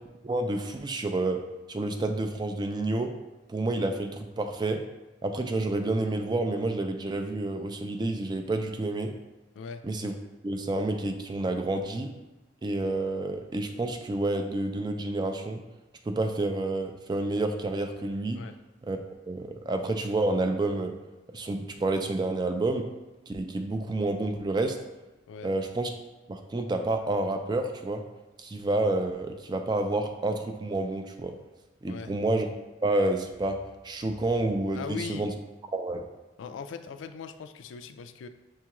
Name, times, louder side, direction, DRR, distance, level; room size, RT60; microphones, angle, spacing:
voice 1, 0.2-1.4 1.7-3.1 3.5-4.8 5.2-9.1 9.8-10.1 10.4-12.1 12.6-15.6 16.0-18.4 18.8-19.0 19.3-20.9 21.3-22.8 23.3-24.8 25.4-25.9 26.3-28.0 28.4-31.3 31.8-32.5 32.8-33.6 33.8-35.3 35.7-36.0, right 2 dB, 20° right, 5 dB, 0.3 m, -29 dB
voice 2, 34.8-35.3 36.4-38.3, left 5 dB, 80° left, 8 dB, 0.3 m, -39 dB
7.1 x 2.4 x 2.9 m, 1.1 s
head